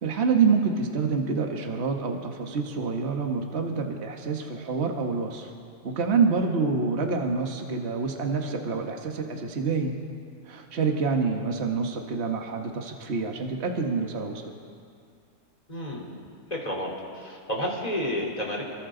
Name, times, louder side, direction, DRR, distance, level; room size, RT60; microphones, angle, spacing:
voice 1, 0.0-5.5 5.8-10.0 10.5-14.5, right 5 dB, 40° right, 3 dB, 1.6 m, -27 dB
voice 2, 15.7-16.1 16.5-18.6, equal, 20° left, -3 dB, 3.8 m, -31 dB
29.5 x 22.5 x 3.9 m, 2.3 s
omnidirectional pair, 1.7 m